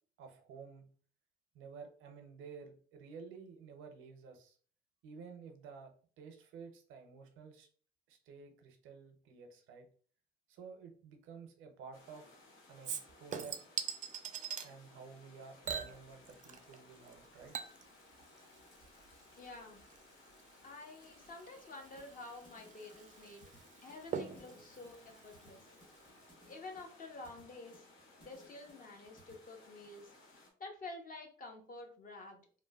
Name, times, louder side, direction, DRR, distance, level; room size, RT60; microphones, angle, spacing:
voice 1, 0.2-0.9 1.5-4.6 5.0-5.9 6.2-7.7 8.1-9.9 10.5-12.4 12.7-13.6 14.6-17.6, right 5 dB, 90° right, 4 dB, 0.6 m, -52 dB
sound 1, 11.9-30.5, left 2 dB, 80° left, 0.7 m, -61 dB
Chink clink / Liquid, 12.8-14.7 15.6-16.8 17.1-26.1 26.4-26.5, right 7 dB, 40° right, 0.4 m, -45 dB
voice 2, 19.4-19.8 20.6-23.5 23.8-25.7 26.5-27.9 28.2-30.1 30.6-32.4, left 2 dB, 45° left, 2 dB, 0.8 m, -50 dB
sound 2, 22.0-29.3, right 1 dB, 25° left, 1.1 m, -63 dB
3.0 x 2.2 x 2.2 m, 0.44 s
cardioid pair, 90°, 20 cm